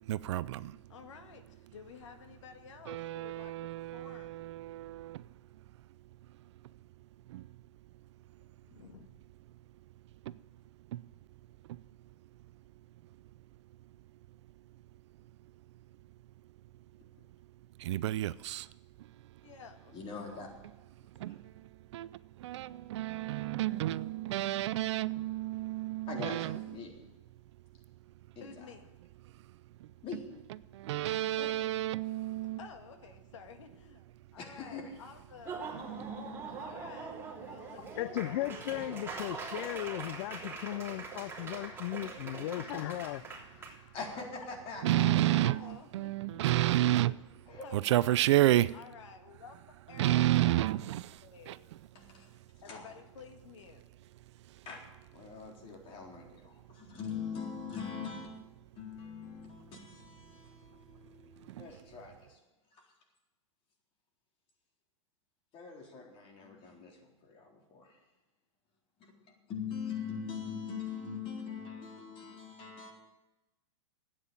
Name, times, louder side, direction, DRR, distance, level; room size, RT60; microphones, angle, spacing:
voice 1, 0.1-0.8 2.9-5.2 7.3-7.4 10.9-11.0 17.8-18.7 21.2-21.4 21.9-22.1 22.4-26.6 30.7-32.6 44.8-47.2 47.8-48.7 50.0-51.1 51.5-51.6, right 15 dB, 65° right, 0.5 m, -30 dB
voice 2, 0.9-4.5 8.4-9.1 19.4-20.0 28.4-28.9 32.4-34.0 34.3-36.1 36.6-39.6 45.0-46.7 47.6-48.2 48.7-50.6 51.2-51.6 52.6-53.8, left 6 dB, 70° left, 1.8 m, -52 dB
voice 3, 19.9-20.5 21.2-21.4 26.1-27.1 28.4-28.7 30.0-30.2 31.4-31.6 34.4-34.9 36.5-36.6 37.4-37.5 43.9-45.7 47.5-47.7 48.0-48.1 51.9-52.3 52.6-52.9 54.7-54.8 55.1-58.3 58.8-62.4 62.7-62.9 65.5-68.0 69.0-72.9, left 6 dB, 35° left, 4.0 m, -43 dB
Laughter / Applause, 35.3-43.7, right 4 dB, 15° right, 3.2 m, -42 dB
voice 4, 38.0-43.4, left 16 dB, 55° left, 0.5 m, -37 dB
12.0 x 9.0 x 9.2 m
hypercardioid pair, 115°, 16 cm